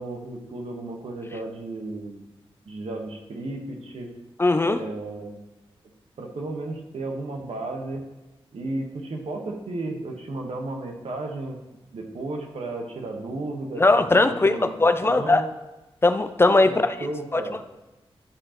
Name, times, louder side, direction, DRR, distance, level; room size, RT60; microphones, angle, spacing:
voice 1, 0.0-2.2 2.7-4.1 4.6-5.4 6.2-8.0 8.5-11.6 11.9-15.5 16.6-17.6, right 2 dB, 85° right, 1 dB, 1.2 m, -34 dB
voice 2, 4.4-4.8 13.8-15.4 16.0-16.9 17.3-17.4, left 2 dB, 25° left, 10 dB, 0.4 m, -19 dB
11.5 x 4.9 x 2.9 m, 1.1 s
wide cardioid pair, 120°, 10 cm